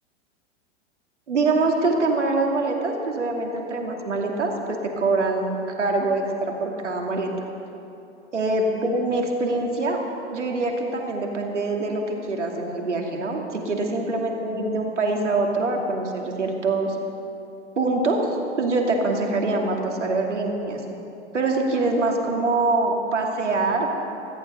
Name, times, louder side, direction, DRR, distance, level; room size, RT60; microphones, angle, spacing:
voice 1, 1.3-6.2 6.6-7.3 8.3-10.0 10.3-17.0 17.8-18.3 18.6-20.8 21.3-24.0, right 3 dB, 80° right, 1 dB, 2.5 m, -24 dB
17.5 x 14.5 x 5.6 m, 2.9 s
figure-of-eight pair, 95°, 35 cm